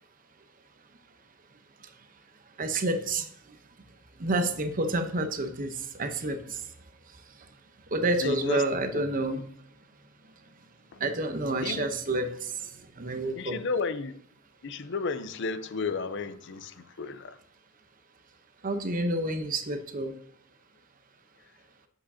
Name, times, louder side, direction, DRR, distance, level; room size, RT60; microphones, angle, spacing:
voice 1, 2.6-3.3 4.2-6.7 7.9-9.4 11.0-13.6 18.6-20.1, right 2 dB, 40° right, 0.9 m, -29 dB
voice 2, 8.2-8.6 8.9-9.1 10.9-11.0 11.6-11.9 13.3-14.2 14.6-17.4, left 4 dB, 60° left, 0.6 m, -33 dB
8.6 x 7.6 x 2.8 m
head